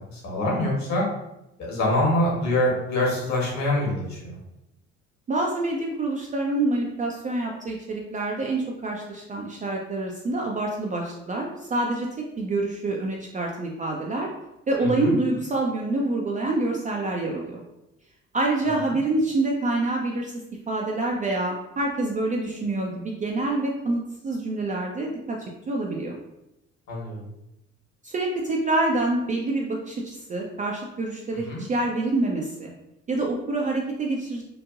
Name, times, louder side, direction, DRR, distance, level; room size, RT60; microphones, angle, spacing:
voice 1, 0.1-1.0 1.6-4.4 14.8-15.1 26.9-27.2 31.5-31.6, left 1 dB, 45° left, -3 dB, 1.3 m, -25 dB
voice 2, 5.3-12.1 12.4-14.3 14.7-17.6 18.3-20.3 20.7-26.2 28.0-32.7 33.1-34.4, right 2 dB, 20° right, -1 dB, 0.4 m, -26 dB
2.8 x 2.5 x 2.4 m, 0.89 s
figure-of-eight pair, 50°, 38 cm